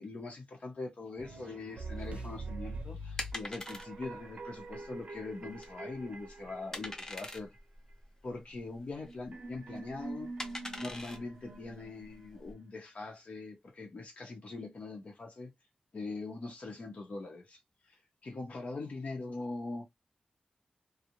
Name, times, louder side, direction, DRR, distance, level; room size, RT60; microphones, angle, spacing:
voice 1, 0.0-7.6 8.2-10.3 10.8-15.5 15.9-17.6 17.9-19.9, left 3 dB, 70° left, 0.8 m, -42 dB
sound 1, 1.2-7.6 9.0-12.6, right 2 dB, 70° right, 0.5 m, -45 dB
sound 2, 1.9-12.5, left 1 dB, 25° left, 0.5 m, -45 dB
2.4 x 2.0 x 2.8 m
wide cardioid pair, 100°, 2 cm